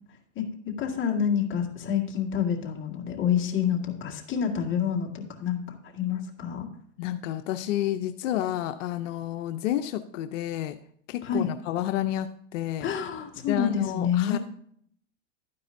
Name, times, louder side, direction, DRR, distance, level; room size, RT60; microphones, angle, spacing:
voice 1, 0.8-5.6 5.9-6.7 11.2-11.5 12.8-14.4, left 8 dB, 30° left, 0 dB, 2.0 m, -27 dB
voice 2, 7.0-10.8 11.1-12.9 13.5-14.4, left 12 dB, 75° left, 8 dB, 0.7 m, -30 dB
12.0 x 9.6 x 2.7 m, 0.64 s
supercardioid pair, 130°, 37 cm